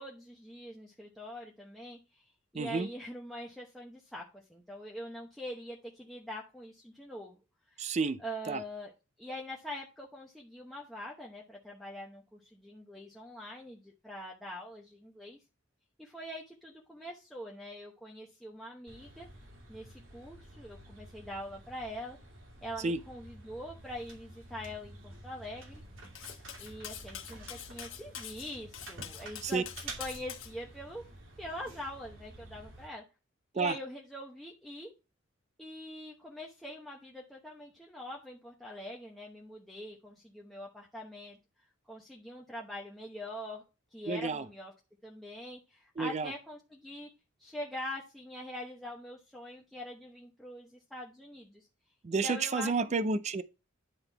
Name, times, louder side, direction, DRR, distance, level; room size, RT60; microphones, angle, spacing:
voice 1, 0.0-2.2 2.5-7.4 7.7-8.9 9.2-15.4 16.0-19.3 19.7-22.2 22.6-25.8 26.6-31.0 31.4-33.0 33.5-34.9 35.6-41.4 41.9-43.6 43.9-44.7 45.0-47.1 47.4-51.7 52.2-52.7, equal, ahead, 0.9 m, -43 dB
voice 2, 2.5-2.9 7.8-8.2 8.5-8.6 22.8-23.0 29.4-29.6 33.5-33.8 44.1-44.4 46.0-46.3 52.0-53.4, right 4 dB, 35° right, 0.4 m, -30 dB
sound 1, 18.9-32.9, right 2 dB, 70° right, 2.7 m, -50 dB
Cutlery silverware, 26.1-30.5, left 10 dB, 85° left, 1.3 m, -45 dB
10.0 x 3.8 x 4.5 m
head